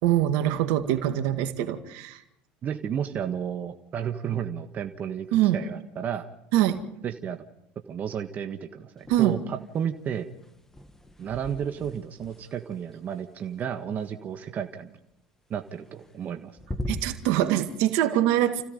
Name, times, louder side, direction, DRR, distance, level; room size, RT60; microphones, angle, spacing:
voice 1, 0.0-2.2 5.3-5.6 6.5-6.8 9.1-9.4 16.9-18.6, right 12 dB, 70° right, 8 dB, 2.0 m, -24 dB
voice 2, 2.6-5.3 5.5-6.3 7.0-7.4 7.9-10.3 11.2-15.0 15.5-16.5, right 8 dB, 40° right, 6 dB, 1.5 m, -32 dB
sound 1, 9.0-9.7 9.9-14.1 15.7-16.3 16.6-17.4, left 1 dB, 10° left, 2.1 m, -40 dB
30.0 x 16.0 x 5.4 m, 0.81 s
hypercardioid pair, 90°, 4 cm